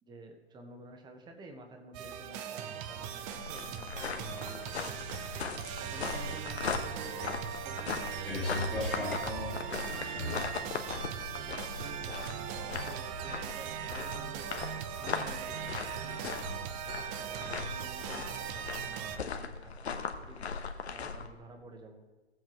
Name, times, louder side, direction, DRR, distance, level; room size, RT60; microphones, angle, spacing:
voice 1, 0.0-4.8 5.8-7.2 7.6-8.4 9.0-10.9 11.3-14.5 15.0-16.8 17.1-20.4 20.9-22.0, right 2 dB, 15° right, 4 dB, 1.1 m, -51 dB
sound 1, 1.9-19.2, right 9 dB, 30° right, 0.6 m, -39 dB
sound 2, 2.9-21.3, left 5 dB, 80° left, 1.1 m, -39 dB
sound 3, 8.3-10.5 11.3-11.4, left 2 dB, 5° left, 1.8 m, -36 dB
17.5 x 7.8 x 3.1 m, 1.2 s
hypercardioid pair, 120°, 32 cm